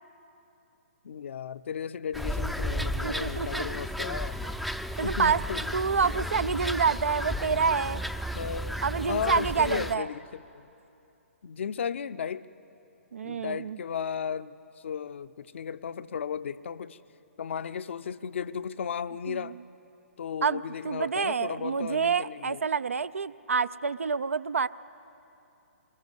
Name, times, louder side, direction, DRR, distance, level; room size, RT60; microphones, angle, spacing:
voice 1, 1.0-4.4 5.0-5.7 8.3-10.7 11.4-12.5 13.2-17.0 17.4-19.6 20.2-22.6, left 7 dB, 60° left, 15 dB, 0.6 m, -35 dB
sound 1, 2.1-10.0, equal, ahead, 0.4 m, -33 dB
voice 2, 3.0-3.7 4.4-4.5 5.0-5.4 5.7-8.0 8.8-10.1 13.1-13.8 19.3-19.4 20.4-24.7, right 5 dB, 75° right, 16 dB, 0.4 m, -27 dB
22.5 x 20.5 x 8.2 m, 2.8 s
figure-of-eight pair, 125°, 7 cm